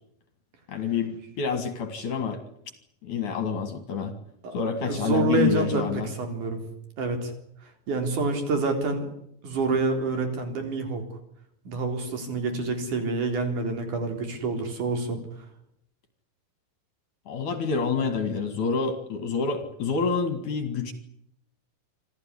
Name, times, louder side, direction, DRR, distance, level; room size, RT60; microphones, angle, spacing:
voice 1, 0.7-2.4 3.0-4.1 4.5-6.1 17.3-20.9, left 5 dB, 55° left, 9 dB, 3.3 m, -27 dB
voice 2, 4.4-5.8 6.2-6.6 7.0-7.3 7.9-9.1 9.4-11.0 11.7-15.2, right 3 dB, 50° right, 6 dB, 5.3 m, -27 dB
27.0 x 15.0 x 9.9 m, 0.74 s
omnidirectional pair, 4.6 m